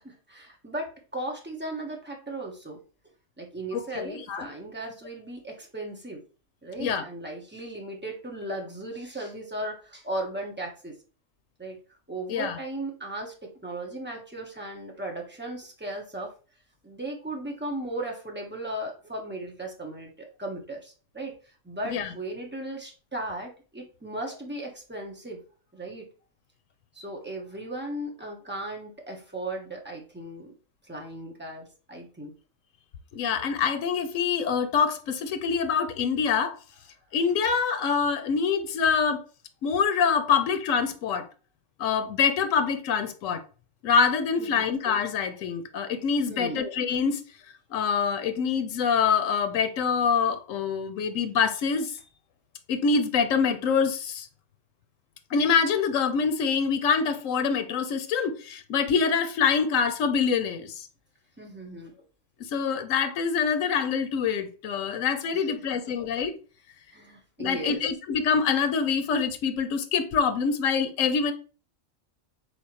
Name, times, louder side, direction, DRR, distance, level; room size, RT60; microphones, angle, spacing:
voice 1, 0.0-2.8 3.4-6.2 6.6-11.0 11.6-11.8 12.1-16.3 16.8-25.4 25.7-26.0 26.9-30.5 30.8-32.3 44.4-44.7 46.3-46.6 61.4-61.9 65.3-65.6 66.9-67.8, right 1 dB, 10° right, 0.8 m, -36 dB
voice 2, 3.7-4.5 6.8-7.1 12.3-12.6 21.8-22.1 33.1-36.6 37.1-39.2 39.6-41.3 41.8-43.4 43.8-47.2 47.7-51.9 52.7-54.3 55.3-60.9 62.5-66.4 67.4-71.3, left 6 dB, 85° left, 1.0 m, -25 dB
4.3 x 3.5 x 2.9 m
omnidirectional pair, 1.3 m